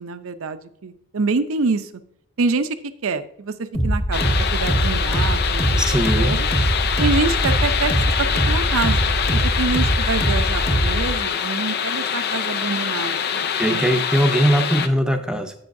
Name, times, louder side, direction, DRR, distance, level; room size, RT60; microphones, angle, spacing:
voice 1, 0.0-1.9 2.4-2.8 3.0-6.5 7.0-7.9 8.2-13.9, right 4 dB, 65° right, 11 dB, 0.6 m, -26 dB
sound 1, 3.7-11.1, right 1 dB, 30° left, 1.4 m, -22 dB
sound 2, 4.1-14.9, left 7 dB, 45° left, 0.5 m, -24 dB
voice 2, 5.8-6.4 13.6-15.5, equal, 5° right, 5 dB, 0.7 m, -20 dB
15.5 x 5.6 x 2.6 m, 0.70 s
head